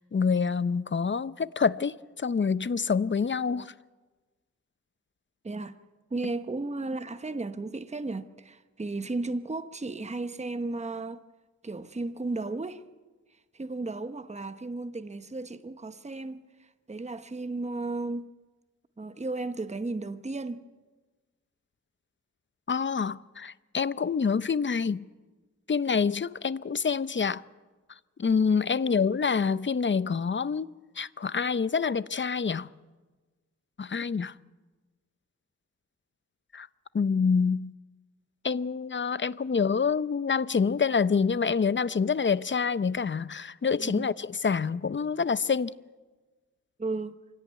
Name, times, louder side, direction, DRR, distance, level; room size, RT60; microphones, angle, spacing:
voice 1, 0.0-3.7 22.7-25.1 25.7-27.4 28.2-30.7 31.0-32.7 33.8-34.3 36.5-36.7 36.9-37.7 38.4-45.7, left 5 dB, 35° left, 0.7 m, -27 dB
voice 2, 5.4-5.8 6.1-11.2 11.6-12.8 13.5-18.3 19.0-20.6 28.8-29.1 43.8-44.1 46.8-47.2, right 3 dB, 20° right, 1.0 m, -34 dB
25.0 x 17.0 x 9.4 m
wide cardioid pair, 70°, 31 cm